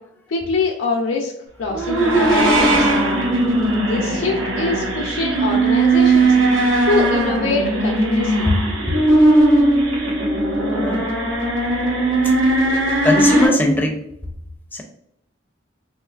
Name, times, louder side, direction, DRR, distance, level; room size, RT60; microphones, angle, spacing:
voice 1, 0.3-1.3 1.6-2.9 3.9-6.4 6.9-8.5, left 3 dB, 85° left, -2 dB, 0.5 m, -24 dB
sound 1, 1.7-13.5, right 2 dB, 85° right, 0.9 m, -18 dB
voice 2, 10.8-11.1 13.0-14.0 14.7-14.8, left 1 dB, 10° left, 1 dB, 0.4 m, -20 dB
3.5 x 3.1 x 2.3 m, 0.74 s
head